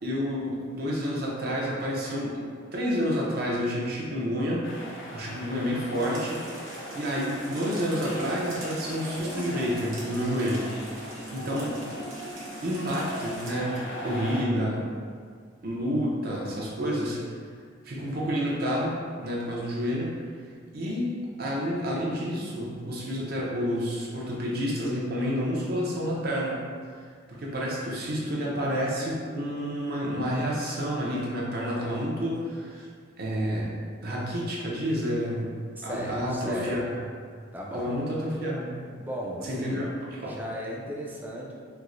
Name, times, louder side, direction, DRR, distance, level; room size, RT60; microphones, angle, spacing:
voice 1, 0.0-2.4 2.7-4.7 5.1-10.7 11.3-11.8 12.6-14.9 15.6-17.2 17.8-20.1 20.7-26.6 27.3-32.8 33.2-33.7 34.0-35.5 35.8-36.8 37.7-38.8 39.4-40.4, equal, 50° right, -4 dB, 0.6 m, -29 dB
sound 1, 4.6-14.4, equal, 75° left, 0.5 m, -39 dB
sound 2, 5.9-13.5, right 1 dB, 85° right, 1.0 m, -43 dB
voice 2, 35.8-37.0 37.5-38.0 39.0-39.9 40.2-41.5, equal, 10° right, -3 dB, 0.3 m, -36 dB
4.5 x 2.1 x 2.5 m, 2.1 s
head